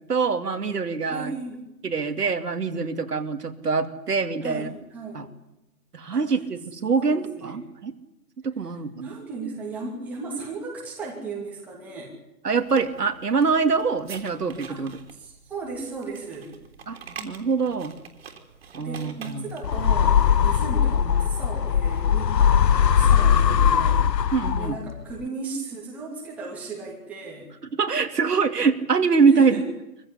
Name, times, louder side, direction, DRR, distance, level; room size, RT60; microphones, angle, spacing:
voice 1, 0.1-1.3 1.8-4.7 5.1-5.3 5.9-7.9 8.4-9.1 12.4-15.0 16.9-17.0 17.2-17.9 18.7-19.4 24.3-24.8 27.8-29.6, right 5 dB, 70° right, 7 dB, 2.8 m, -24 dB
voice 2, 1.1-1.6 4.4-5.3 6.1-6.2 7.0-7.6 8.9-12.1 14.7-14.8 15.1-16.5 18.8-24.1 24.5-27.5 29.3-29.7, right 3 dB, 5° right, -4 dB, 2.5 m, -36 dB
sound 1, 12.6-19.8, right 6 dB, 35° right, 3.4 m, -45 dB
sound 2, 19.6-25.0, left 8 dB, 80° left, 1.0 m, -20 dB
24.0 x 16.0 x 9.9 m, 0.93 s
hypercardioid pair, 170°, 49 cm